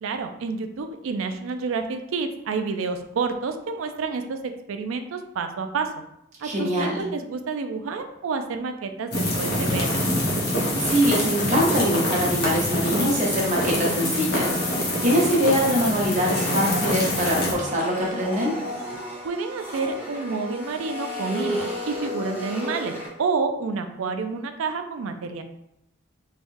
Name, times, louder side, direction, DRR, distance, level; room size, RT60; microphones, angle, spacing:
voice 1, 0.0-5.9 6.4-10.0 19.2-25.4, right 4 dB, 85° right, 7 dB, 0.4 m, -29 dB
voice 2, 6.4-7.0 10.5-18.6, equal, 35° right, -2 dB, 0.9 m, -23 dB
sound 1, 9.1-17.5, left 1 dB, 55° left, 1.0 m, -25 dB
Domestic sounds home sounds, 14.3-23.1, left 1 dB, 10° right, 1.4 m, -34 dB
3.5 x 3.2 x 2.6 m, 0.81 s
head